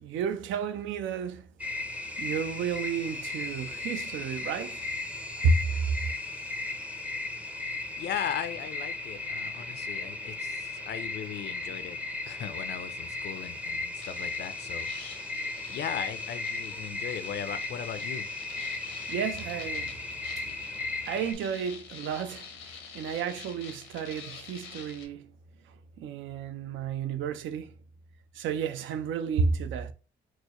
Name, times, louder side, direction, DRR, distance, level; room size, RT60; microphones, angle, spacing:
voice 1, 0.0-1.5 2.2-4.9 5.4-5.6 19.1-20.0 20.4-25.3 26.0-27.7 28.3-29.9, right 5 dB, 75° right, 0.5 m, -32 dB
sound 1, 1.6-21.3, left 3 dB, 5° right, 0.5 m, -36 dB
voice 2, 8.0-12.0 12.3-15.1 15.7-18.3, left 9 dB, 60° left, 0.5 m, -38 dB
sound 2, 14.0-25.1, left 6 dB, 80° left, 0.9 m, -47 dB
4.5 x 2.1 x 2.9 m
cardioid pair, 90°, 20 cm